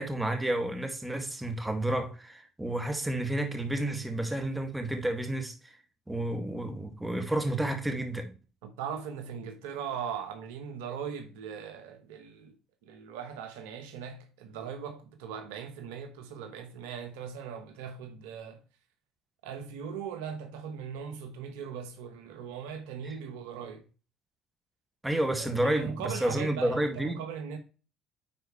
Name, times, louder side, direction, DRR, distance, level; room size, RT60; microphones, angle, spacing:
voice 1, 0.0-5.7 6.1-8.3 25.0-27.2, right 1 dB, 10° right, 2.1 m, -30 dB
voice 2, 8.6-12.5 12.8-18.6 19.4-23.8 25.4-27.6, right 7 dB, 80° right, 1.1 m, -39 dB
9.8 x 4.6 x 3.2 m
hypercardioid pair, 65°, 0 cm